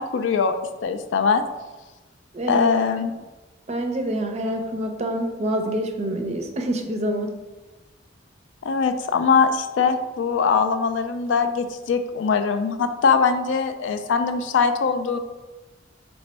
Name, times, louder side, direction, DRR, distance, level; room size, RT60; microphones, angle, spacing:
voice 1, 0.0-1.4 2.5-3.1 8.6-15.2, left 5 dB, 70° left, 8 dB, 0.3 m, -22 dB
voice 2, 2.3-2.7 3.7-7.3, right 1 dB, 35° right, 4 dB, 0.5 m, -26 dB
3.3 x 3.1 x 4.2 m, 1.1 s
head